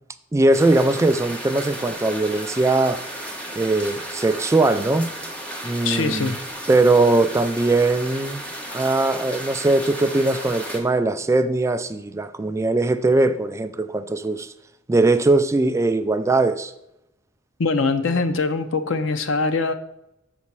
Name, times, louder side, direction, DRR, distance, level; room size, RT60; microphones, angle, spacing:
voice 1, 0.3-3.0 3.5-5.1 5.6-6.3 6.7-8.4 8.7-14.5 14.9-16.7, right 2 dB, 15° right, 0.3 m, -20 dB
sound 1, 0.5-10.8, right 1 dB, 5° left, 1.1 m, -34 dB
voice 2, 5.8-6.4 17.6-19.7, left 3 dB, 70° left, 0.6 m, -22 dB
6.6 x 4.2 x 6.0 m
head